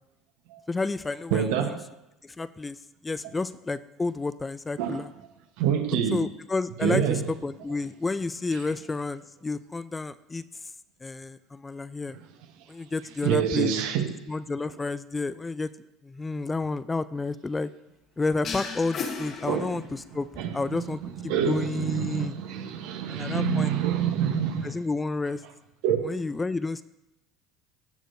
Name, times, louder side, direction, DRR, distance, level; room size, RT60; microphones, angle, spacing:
voice 1, 0.7-1.8 2.2-2.8 3.0-5.1 6.1-10.5 11.0-12.2 12.7-13.7 14.3-15.7 16.0-17.7 18.2-22.4 23.1-23.7 24.6-25.4 26.0-26.8, left 3 dB, 20° left, 0.4 m, -30 dB
voice 2, 1.3-1.8 4.8-5.0 5.6-6.2 6.8-7.2 13.2-14.1 19.5-19.7 20.4-20.5 20.8-20.9 21.3-24.8 25.8-26.2, right 8 dB, 70° right, 1.0 m, -26 dB
sound 1, 18.4-20.2, left 5 dB, 50° left, 1.4 m, -35 dB
16.0 x 6.2 x 2.7 m
hypercardioid pair, 70°, 0 cm